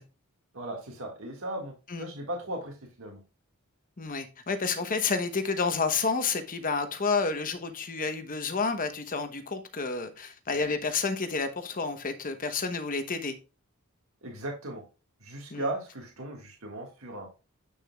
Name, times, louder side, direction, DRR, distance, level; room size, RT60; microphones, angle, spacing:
voice 1, 0.5-3.2 14.2-14.8 15.2-17.3, right 1 dB, 70° right, 0 dB, 1.9 m, -37 dB
voice 2, 4.0-13.3 15.5-15.7, left 4 dB, 40° left, 8 dB, 1.0 m, -30 dB
8.3 x 6.7 x 2.3 m, 0.30 s
head